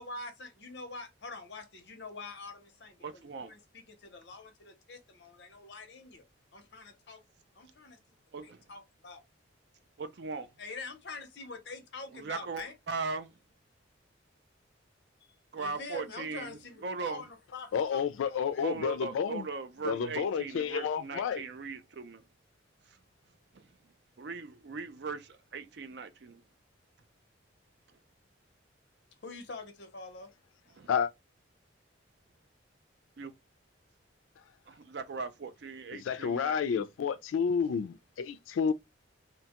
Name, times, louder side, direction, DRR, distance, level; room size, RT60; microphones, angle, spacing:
voice 1, 0.0-6.2 6.5-7.2 7.5-9.2 10.6-12.7 15.2-18.7 29.2-30.3, left 3 dB, 60° left, 0.7 m, -45 dB
voice 2, 3.0-3.5 8.3-8.6 10.0-10.5 12.1-13.3 15.5-17.2 18.6-22.2 22.9-23.0 23.5-23.7 24.2-26.4 30.8-30.9 33.2-33.3 34.7-36.9, right 4 dB, 60° right, 0.4 m, -39 dB
voice 3, 17.7-19.4 19.8-21.4 30.9-31.1 36.1-38.7, left 6 dB, 85° left, 0.3 m, -30 dB
2.7 x 2.2 x 2.8 m
head